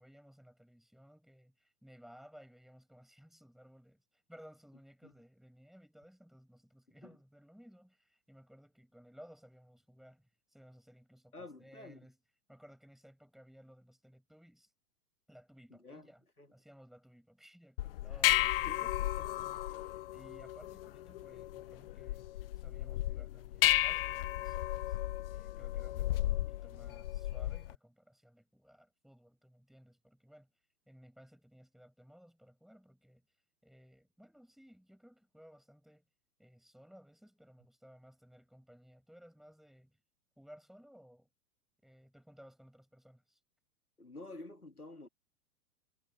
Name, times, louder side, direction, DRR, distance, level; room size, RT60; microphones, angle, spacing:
voice 1, 0.0-12.2 12.5-14.7 15.3-16.2 16.5-22.3 22.6-25.0 25.3-30.5 30.9-33.2 33.6-36.0 36.4-40.0 40.4-41.3 41.8-43.4, equal, ahead, 6.9 m, -59 dB
voice 2, 11.3-12.1 15.8-16.1 16.4-16.5 18.7-19.5 44.0-45.1, left 2 dB, 90° left, 2.1 m, -50 dB
sound 1, 17.8-27.7, left 15 dB, 40° left, 0.5 m, -34 dB
figure-of-eight pair, 105°, 44 cm